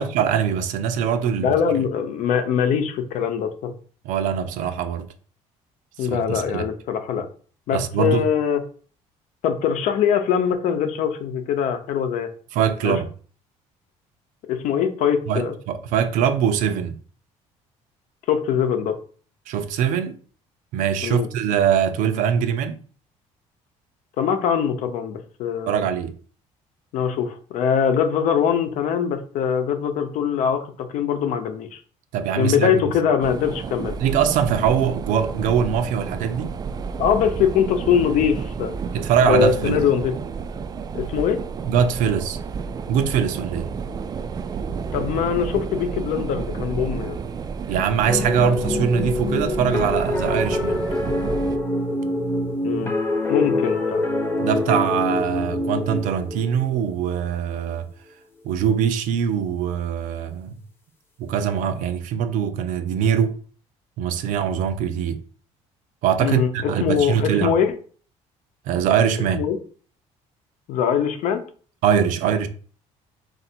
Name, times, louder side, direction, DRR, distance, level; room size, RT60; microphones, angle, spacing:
voice 1, 0.0-1.5 4.0-5.1 6.0-6.7 7.7-8.3 12.5-13.1 15.3-16.9 19.5-20.2 20.7-22.8 25.7-26.1 32.1-32.7 34.0-36.5 38.9-39.8 41.6-42.4 42.9-43.7 47.7-50.8 54.4-57.9 58.4-60.5 61.2-63.4 64.0-65.2 66.0-67.5 68.7-69.4 71.8-72.5, right 8 dB, 80° right, 0.6 m, -22 dB
voice 2, 1.4-3.7 6.0-7.3 7.7-8.6 9.4-12.3 12.8-13.0 14.5-15.5 18.3-19.0 21.0-21.3 24.2-25.8 26.9-31.8 32.4-34.0 37.0-38.7 39.2-40.1 40.9-41.4 44.9-47.2 52.6-52.9 53.3-54.0 66.2-66.5 66.8-67.7 69.3-69.6 70.7-71.4, left 8 dB, 70° left, 0.8 m, -22 dB
sound 1, 33.2-51.6, right 5 dB, 30° right, 0.3 m, -31 dB
sound 2, 48.1-57.3, left 2 dB, 15° left, 0.9 m, -25 dB
3.9 x 2.6 x 4.3 m
cardioid pair, 120°, 13 cm